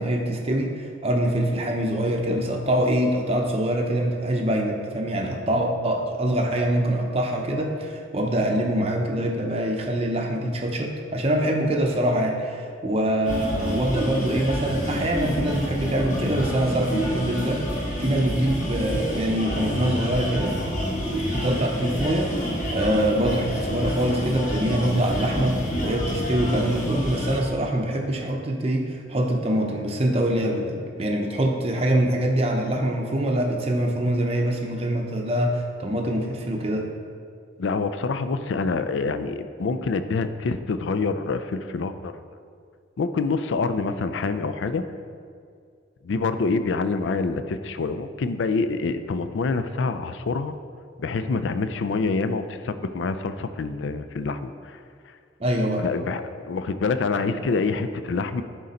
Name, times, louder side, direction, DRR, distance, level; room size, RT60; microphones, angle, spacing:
voice 1, 0.0-20.6 21.3-22.3 22.7-36.9 55.4-55.9, right 1 dB, 30° right, 1 dB, 0.6 m, -24 dB
sound 1, 13.2-27.4, equal, 40° left, 1.3 m, -28 dB
voice 2, 37.6-42.1 43.0-44.8 46.0-50.5 51.0-54.8 55.8-58.4, left 4 dB, 70° left, 11 dB, 0.4 m, -26 dB
11.0 x 3.8 x 4.1 m, 2.2 s
head